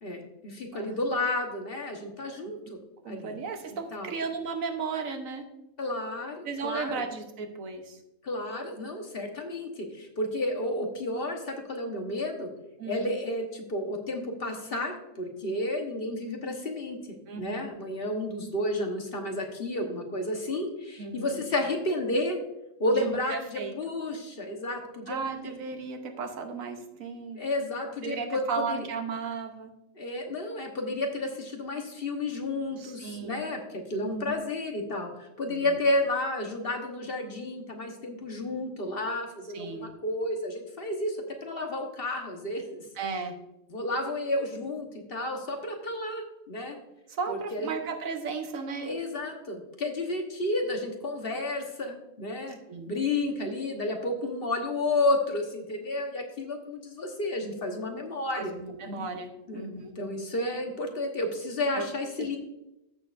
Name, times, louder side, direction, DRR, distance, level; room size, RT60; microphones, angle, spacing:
voice 1, 0.0-2.8 3.1-3.3 3.9-4.1 5.8-7.0 8.2-12.5 12.9-22.4 22.8-25.2 25.4-25.5 27.3-28.8 30.0-42.8 43.7-46.7 47.3-47.7 48.8-52.6 52.9-58.5 58.8-59.1 59.5-59.7 60.0-62.4, left 2 dB, 45° left, 2 dB, 1.4 m, -31 dB
voice 2, 3.0-5.5 6.4-8.0 12.8-13.1 17.3-17.7 21.0-21.4 22.9-23.7 25.1-27.5 28.0-29.7 32.8-33.5 34.0-34.3 35.5-35.8 39.5-39.9 43.0-43.4 47.1-49.0 52.7-52.9 58.3-59.9 61.7-61.9 62.2-62.4, right 5 dB, 85° right, 5 dB, 1.4 m, -35 dB
14.0 x 6.6 x 2.6 m, 0.89 s
omnidirectional pair, 1.4 m